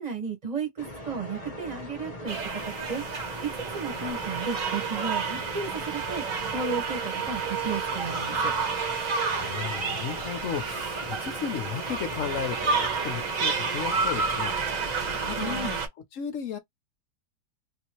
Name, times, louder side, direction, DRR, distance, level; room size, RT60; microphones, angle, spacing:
voice 1, 0.0-3.0 3.4-6.2 6.5-8.5 15.4-15.8, right 5 dB, 25° right, 1.4 m, -34 dB
sound 1, 0.8-15.6, left 1 dB, 35° left, 0.7 m, -41 dB
sound 2, 2.3-15.9, right 5 dB, 55° right, 1.5 m, -30 dB
voice 2, 9.3-15.8 16.1-16.6, left 8 dB, 65° left, 0.8 m, -35 dB
3.5 x 2.6 x 3.0 m
omnidirectional pair, 1.8 m